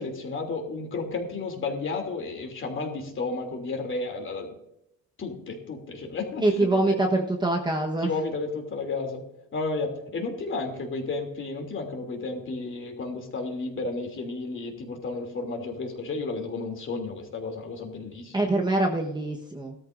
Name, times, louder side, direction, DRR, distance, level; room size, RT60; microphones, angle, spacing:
voice 1, 0.0-4.6 5.2-6.9 8.0-9.2 9.5-18.4, left 3 dB, 35° left, 3 dB, 3.0 m, -32 dB
voice 2, 6.4-8.1 18.3-19.7, right 2 dB, 15° right, 1 dB, 1.2 m, -24 dB
17.5 x 13.0 x 2.6 m, 0.83 s
cardioid pair, 135°, 33 cm